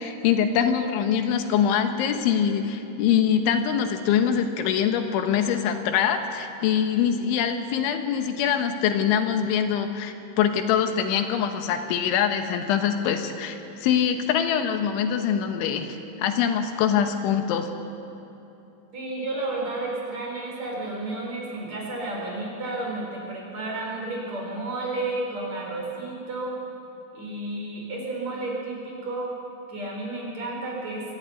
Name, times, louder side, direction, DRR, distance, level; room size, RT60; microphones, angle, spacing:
voice 1, 0.0-17.7, left 8 dB, 80° left, 7 dB, 3.6 m, -24 dB
voice 2, 18.9-26.6 27.1-29.4 29.7-31.1, right 2 dB, 35° right, -2 dB, 5.4 m, -32 dB
24.0 x 14.5 x 9.5 m, 3.0 s
omnidirectional pair, 5.4 m